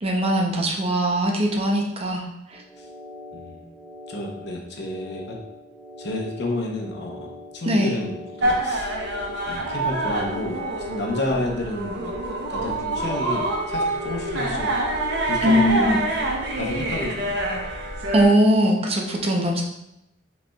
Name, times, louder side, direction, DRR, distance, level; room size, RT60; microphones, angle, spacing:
voice 1, 0.0-2.6 7.6-8.0 15.4-16.0 18.1-19.6, equal, 35° right, 1 dB, 0.7 m, -21 dB
sound 1, 2.5-15.3, equal, 5° right, 0.9 m, -42 dB
voice 2, 3.3-3.7 4.1-5.4 6.0-8.9 9.4-12.1 12.5-14.8 15.3-16.0 16.5-17.4, left 1 dB, 65° left, 1 dB, 0.9 m, -30 dB
sound 2, 8.4-18.3, right 1 dB, 65° right, 0.8 m, -26 dB
5.2 x 4.3 x 2.3 m, 0.85 s
head